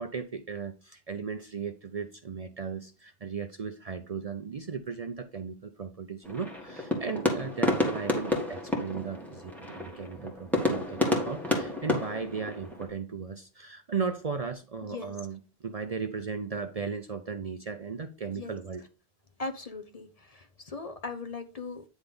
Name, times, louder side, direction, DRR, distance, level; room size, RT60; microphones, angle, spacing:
voice 1, 0.0-18.8, right 5 dB, 45° right, 8 dB, 0.6 m, -36 dB
sound 1, 6.2-12.9, left 1 dB, ahead, 1.7 m, -30 dB
voice 2, 14.8-15.1 18.3-18.6 19.4-21.8, left 3 dB, 40° left, 7 dB, 0.9 m, -39 dB
9.7 x 3.4 x 5.3 m, 0.32 s
omnidirectional pair, 1.0 m